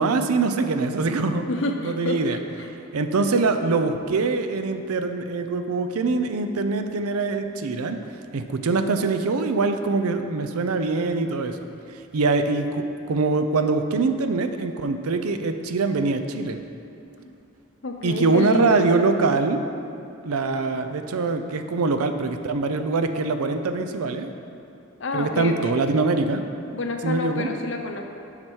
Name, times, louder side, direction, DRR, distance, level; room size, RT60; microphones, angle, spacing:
voice 1, 0.0-1.5 1.8-2.4 2.9-8.0 8.3-11.6 11.9-16.6 18.0-19.6 20.2-24.3 25.1-26.4 27.0-27.5, right 3 dB, 85° right, 8 dB, 0.5 m, -23 dB
voice 2, 1.5-2.7 17.8-18.9 25.0-25.8 26.7-28.0, left 2 dB, 55° left, 4 dB, 0.6 m, -29 dB
7.7 x 5.8 x 4.5 m, 2.8 s
head